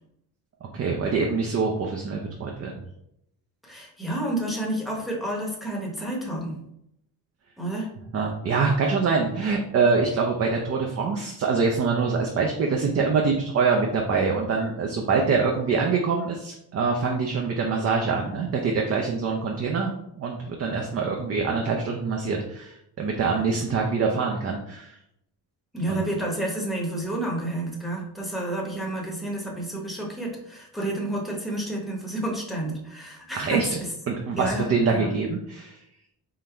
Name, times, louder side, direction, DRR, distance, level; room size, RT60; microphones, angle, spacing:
voice 1, 0.7-2.8 8.1-25.0 25.9-26.0 33.4-33.7 34.1-35.8, right 4 dB, 40° right, 1 dB, 0.5 m, -25 dB
voice 2, 3.6-6.6 7.6-7.9 25.7-33.7 34.4-35.1, right 1 dB, ahead, -2 dB, 0.9 m, -30 dB
3.8 x 2.5 x 4.3 m, 0.78 s
cardioid pair, 140°, 39 cm